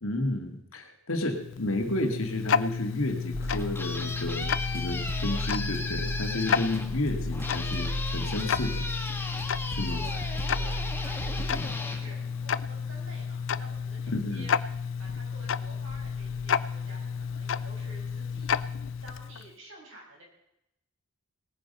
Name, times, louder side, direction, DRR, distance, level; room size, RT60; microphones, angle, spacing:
voice 1, 0.0-8.9 9.7-10.0 11.5-11.7 14.1-14.5, left 1 dB, 80° left, 4 dB, 2.1 m, -32 dB
Tick-tock, 1.2-19.5, left 6 dB, 65° left, 0.4 m, -32 dB
sound 1, 3.2-12.9, left 3 dB, 10° left, 1.2 m, -37 dB
sound 2, 3.3-11.6, right 1 dB, 15° right, 0.6 m, -36 dB
voice 2, 9.9-14.6 15.0-18.7 19.0-20.2, right 1 dB, 65° right, -1 dB, 5.7 m, -50 dB
18.5 x 9.6 x 5.5 m, 0.83 s
head